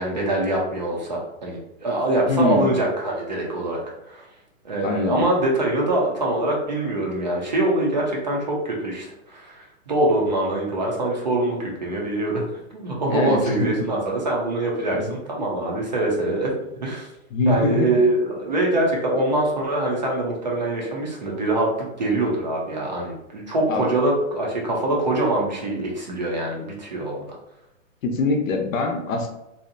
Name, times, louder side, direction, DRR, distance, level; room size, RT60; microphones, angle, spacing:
voice 1, 0.0-4.2 4.6-12.4 12.7-17.1 17.5-27.2, right 1 dB, 35° right, -2 dB, 0.4 m, -24 dB
voice 2, 2.3-2.7 4.8-5.2 13.1-13.7 14.9-15.2 17.3-17.9 23.7-23.9 28.0-29.3, left 2 dB, 75° left, 3 dB, 0.7 m, -23 dB
2.6 x 2.0 x 2.6 m, 0.90 s
hypercardioid pair, 165°, 40 cm